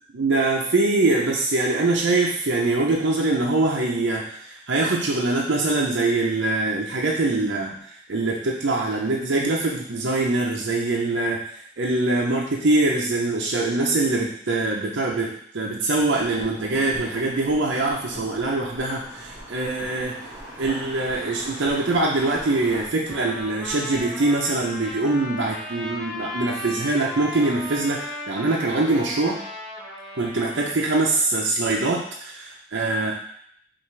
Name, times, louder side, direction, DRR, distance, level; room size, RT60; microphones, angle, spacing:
voice 1, 0.1-7.8 8.1-20.1 20.6-29.4 30.1-33.1, right 2 dB, 65° right, -3 dB, 0.6 m, -23 dB
sound 1, 15.9-25.0 25.3-25.4, equal, 30° left, 1.5 m, -44 dB
sound 2, 17.0-22.8, right 1 dB, 20° right, 1.2 m, -42 dB
Trumpet, 23.1-30.8, left 1 dB, ahead, 0.9 m, -36 dB
5.7 x 2.5 x 3.2 m, 0.66 s
head